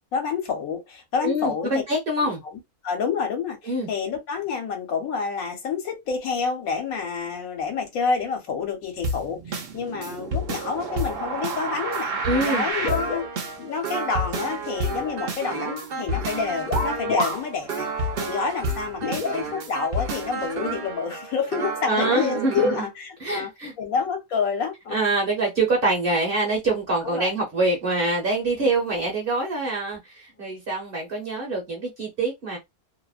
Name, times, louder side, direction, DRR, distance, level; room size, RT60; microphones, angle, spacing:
voice 1, 0.1-1.8 2.2-2.3 2.8-23.5 23.8-25.1 27.0-27.3 28.6-28.7, left 5 dB, 70° left, 1.2 m, -28 dB
voice 2, 1.2-2.4 3.7-3.9 12.2-12.7 21.9-22.7 23.2-23.7 24.9-32.6, right 2 dB, 45° right, 0.9 m, -25 dB
sound 1, 9.0-22.8, right 2 dB, 65° right, 0.6 m, -30 dB
sound 2, 12.7-13.8 14.1-15.2 15.6-15.9 16.7-17.5 17.8-17.9 19.0-19.8 20.7-20.8 21.7-21.9, left 3 dB, 50° left, 0.6 m, -30 dB
2.7 x 2.0 x 2.3 m
omnidirectional pair, 1.6 m